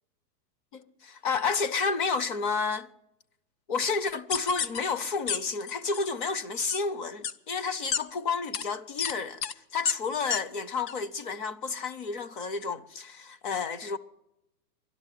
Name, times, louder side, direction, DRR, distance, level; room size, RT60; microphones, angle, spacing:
voice 1, 0.7-2.9 3.7-9.4 9.7-14.0, left 4 dB, 30° left, 0.6 m, -31 dB
sound 1, 4.3-4.8 5.3-5.4 5.7-6.0 6.7-6.8 7.2-7.3 7.9-8.0 8.5-8.6 9.0-9.1 9.4-9.5 9.8-9.9 10.3-10.4 10.9-11.0, left 8 dB, 75° left, 1.0 m, -29 dB
12.5 x 11.5 x 9.7 m
hypercardioid pair, 155°, 50 cm